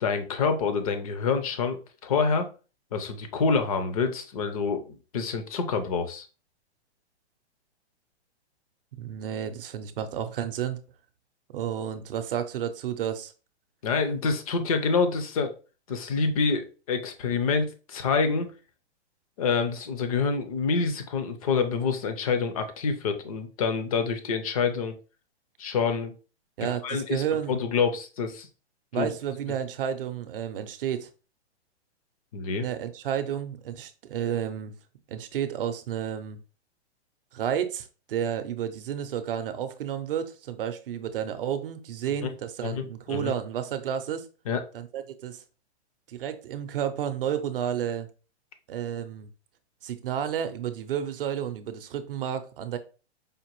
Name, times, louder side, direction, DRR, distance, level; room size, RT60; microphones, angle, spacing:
voice 1, 0.0-2.5 2.9-4.9 5.1-6.3 13.8-15.5 15.9-18.5 19.4-25.0 25.6-26.1 26.8-28.5 28.9-29.1 32.3-32.7 42.2-42.3 42.6-43.3 44.5-44.6, left 5 dB, 30° left, 0.5 m, -27 dB
voice 2, 9.0-10.8 11.5-13.3 26.6-27.6 28.9-31.1 32.6-34.7 35.1-36.4 37.3-44.3 44.7-45.4 46.1-48.1 48.7-49.3 49.8-52.8, right 9 dB, 50° right, 0.6 m, -31 dB
5.0 x 2.5 x 3.0 m
hypercardioid pair, 165°, 34 cm